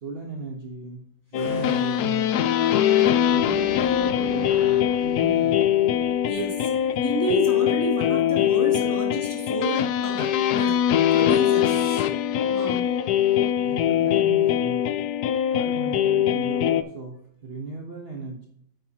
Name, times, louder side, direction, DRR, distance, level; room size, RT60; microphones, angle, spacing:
voice 1, 0.0-2.4 3.3-5.8 13.6-15.0 15.5-18.5, right 3 dB, 40° right, 0 dB, 1.2 m, -37 dB
sound 1, 1.3-16.8, left 10 dB, 70° left, 1.1 m, -22 dB
sound 2, 1.3-7.0, left 2 dB, 50° left, 4.2 m, -41 dB
voice 2, 6.2-6.7 7.0-10.8 11.1-12.0 12.5-12.9, equal, 10° left, -2 dB, 2.3 m, -30 dB
9.2 x 8.8 x 2.9 m, 0.67 s
omnidirectional pair, 1.8 m